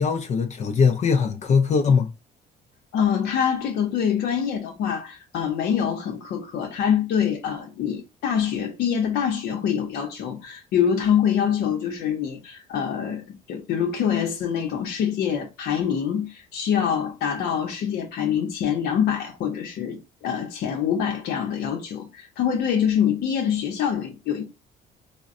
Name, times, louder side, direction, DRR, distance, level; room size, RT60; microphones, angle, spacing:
voice 1, 0.0-2.1, left 5 dB, 40° left, 0.5 m, -21 dB
voice 2, 2.9-24.4, left 8 dB, 70° left, 0.8 m, -25 dB
3.8 x 2.1 x 2.5 m
cardioid pair, 110°, 17 cm